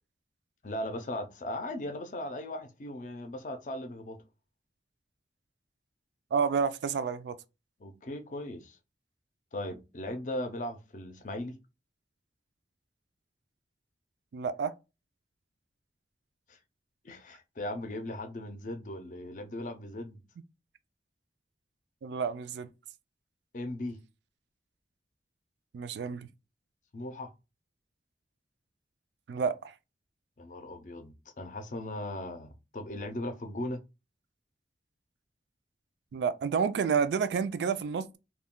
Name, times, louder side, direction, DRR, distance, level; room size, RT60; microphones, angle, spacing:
voice 1, 0.6-4.2 7.8-8.8 9.5-11.5 16.5-16.6 17.0-20.2 23.5-24.0 26.9-27.3 30.4-33.8, left 1 dB, 45° left, 0.5 m, -38 dB
voice 2, 6.3-7.4 14.3-14.7 22.0-22.7 25.7-26.3 29.3-29.7 36.1-38.2, right 6 dB, 80° right, 0.3 m, -29 dB
2.2 x 2.2 x 3.5 m
head